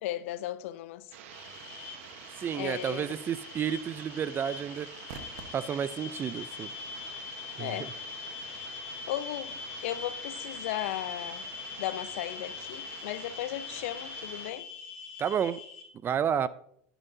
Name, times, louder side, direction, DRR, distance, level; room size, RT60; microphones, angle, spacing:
voice 1, 0.0-1.1 2.5-3.0 7.6-7.9 9.1-11.4 11.8-14.7, left 14 dB, 75° left, 0.5 m, -36 dB
sound 1, 1.1-14.5, right 8 dB, 75° right, 1.1 m, -47 dB
sound 2, 1.3-15.8, left 6 dB, 60° left, 2.2 m, -43 dB
voice 2, 2.4-4.9 5.5-6.7 7.6-7.8 15.2-15.6 16.0-16.5, right 8 dB, 30° right, 0.4 m, -31 dB
10.5 x 10.0 x 2.7 m
supercardioid pair, 105°, 7 cm